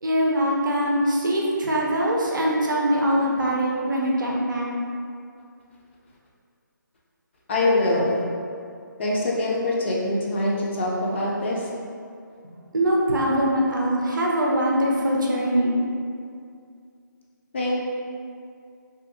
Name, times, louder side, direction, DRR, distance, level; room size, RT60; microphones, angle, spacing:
voice 1, 0.0-4.7 12.5-15.8, equal, 70° right, -3 dB, 0.6 m, -23 dB
voice 2, 7.5-8.2 9.0-11.7 17.5-17.7, left 1 dB, 35° left, -4 dB, 0.4 m, -24 dB
2.7 x 2.6 x 2.6 m, 2.3 s
figure-of-eight pair, 150°, 11 cm